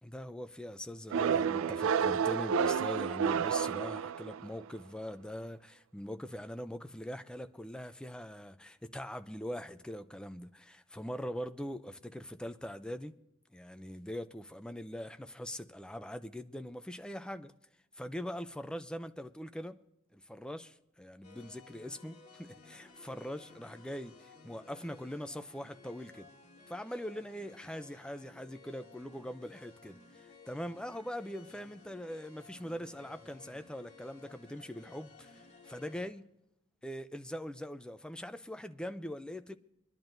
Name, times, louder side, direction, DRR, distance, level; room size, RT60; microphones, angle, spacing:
voice 1, 0.0-13.1 13.5-17.5 17.9-19.8 20.1-26.3 26.7-36.3 36.8-39.6, equal, 5° left, 0.4 m, -42 dB
sound 1, 1.1-4.6, right 7 dB, 70° right, 0.3 m, -30 dB
sound 2, 21.2-36.1, left 4 dB, 35° left, 2.6 m, -57 dB
26.0 x 11.0 x 2.6 m
head